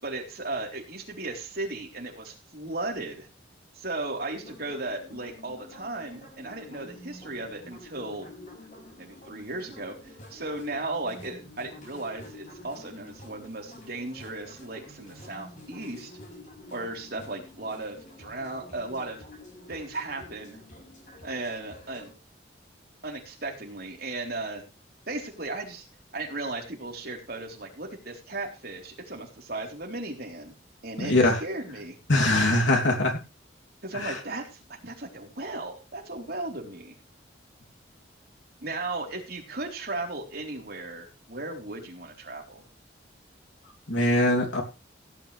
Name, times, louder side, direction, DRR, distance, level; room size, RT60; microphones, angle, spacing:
voice 1, 0.0-3.3 3.7-8.3 9.0-16.1 16.7-19.2 19.7-20.6 21.2-22.1 23.0-24.6 25.1-25.9 26.1-30.5 30.8-32.0 32.7-32.8 33.8-37.0 38.6-42.6, right 2 dB, 55° right, 0 dB, 4.0 m, -36 dB
sound 1, 4.3-22.1, left 1 dB, 40° left, 6.2 m, -48 dB
voice 2, 31.0-31.4 32.1-33.2 33.9-34.2 43.9-44.6, left 1 dB, 85° left, 1 dB, 3.1 m, -22 dB
17.0 x 9.6 x 3.4 m, 0.30 s
head